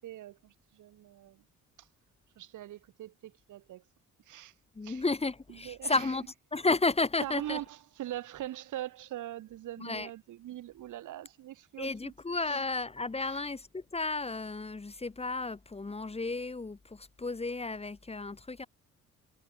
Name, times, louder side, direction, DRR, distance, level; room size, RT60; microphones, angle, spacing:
voice 1, 0.0-1.4 1.8-1.9 2.4-3.8 4.3-4.5 4.8-5.0 5.5-6.1 7.2-12.1 12.5-12.6 13.2-13.4, right 13 dB, 80° right, 5.6 m, -42 dB
voice 2, 4.7-6.2 6.5-7.6 9.8-10.1 11.8-18.7, left 3 dB, 20° left, 1.8 m, -32 dB
cardioid pair, 90°, 30 cm